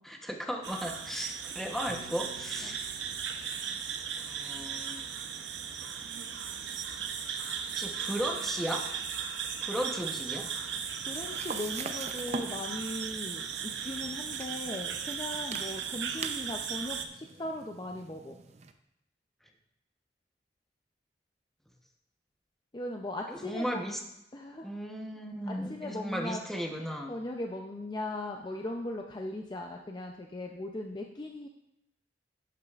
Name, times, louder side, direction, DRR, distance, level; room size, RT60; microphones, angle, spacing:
voice 1, 0.0-2.9 4.2-5.1 7.7-8.8 9.6-10.4 23.3-24.0 24.6-27.1, equal, ahead, 1 dB, 0.9 m, -36 dB
sound 1, 0.6-17.0, right 7 dB, 90° right, 0.7 m, -37 dB
Piano, 1.9-6.3, right 1 dB, 60° right, 2.9 m, -56 dB
sound 2, 10.4-18.7, right 4 dB, 40° right, 0.5 m, -44 dB
voice 2, 11.1-18.4 22.7-23.9 24.3-24.7 25.5-26.4 27.1-31.5, left 1 dB, 25° left, 2 dB, 0.5 m, -38 dB
11.5 x 8.3 x 2.4 m, 0.84 s
head